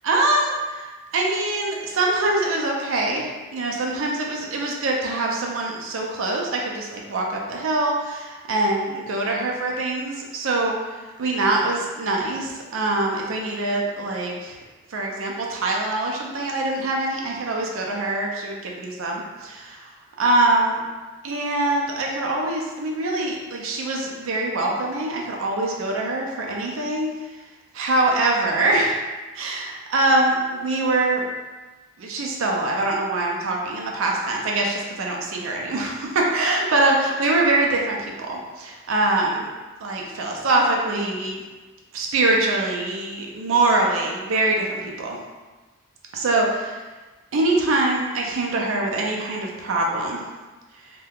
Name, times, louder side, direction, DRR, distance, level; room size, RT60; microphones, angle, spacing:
voice 1, 0.1-10.7 11.2-14.6 14.9-19.9 20.2-20.8 21.2-27.1 27.7-29.0 29.4-29.7 29.9-31.2 32.0-39.5 39.8-41.4 41.9-45.2 46.1-46.8 47.3-50.2, right 2 dB, 70° right, -1 dB, 0.5 m, -23 dB
2.7 x 2.2 x 3.5 m, 1.2 s
head